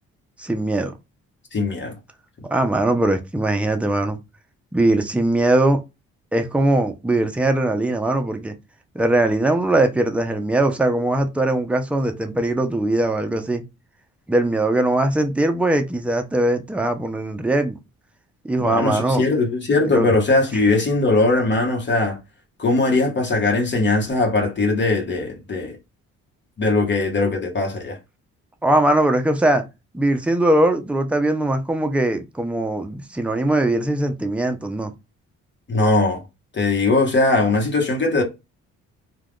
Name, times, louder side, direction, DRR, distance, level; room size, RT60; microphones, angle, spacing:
voice 1, 0.4-1.0 2.5-4.2 4.7-5.8 6.3-8.5 8.9-13.6 14.3-17.8 18.4-19.2 19.9-20.1 28.6-29.6 29.9-34.9, right 1 dB, 5° right, 0.5 m, -20 dB
voice 2, 1.5-1.9 18.6-22.2 22.6-25.8 26.6-28.0 35.7-36.2 36.5-38.2, left 3 dB, 40° left, 1.0 m, -20 dB
2.3 x 2.3 x 3.5 m
cardioid pair, 90°, 30 cm